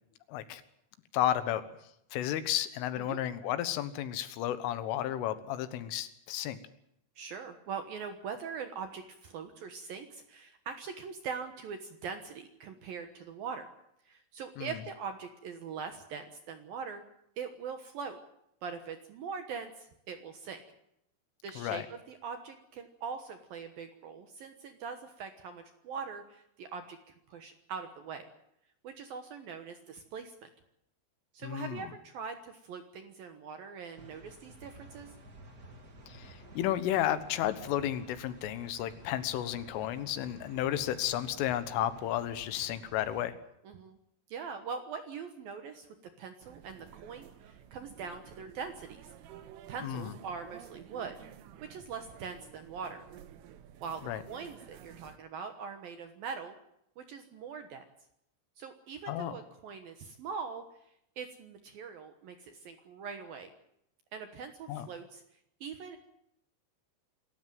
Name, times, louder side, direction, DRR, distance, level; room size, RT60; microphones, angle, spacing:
voice 1, 0.3-0.6 1.1-1.6 2.1-6.6 14.6-14.7 21.6-21.9 31.4-31.9 36.1-43.4 49.8-50.1 54.1-54.2 59.1-59.4 64.7-64.9, left 12 dB, 80° left, 12 dB, 3.8 m, -32 dB
voice 2, 7.2-13.7 14.1-17.0 17.4-18.2 18.6-20.6 21.4-28.3 28.8-30.5 31.3-35.1 43.6-44.0 44.3-45.9 46.2-49.1 49.7-51.2 51.6-53.0 53.8-56.5 57.0-57.8 58.6-60.6 61.2-63.5 64.1-65.2 65.6-66.0, right 6 dB, 65° right, 7 dB, 2.4 m, -42 dB
sound 1, 33.9-43.2, right 1 dB, 35° right, 1.4 m, -52 dB
sound 2, 46.4-55.2, right 10 dB, 85° right, 4.0 m, -52 dB
27.0 x 13.5 x 9.2 m, 0.77 s
omnidirectional pair, 5.7 m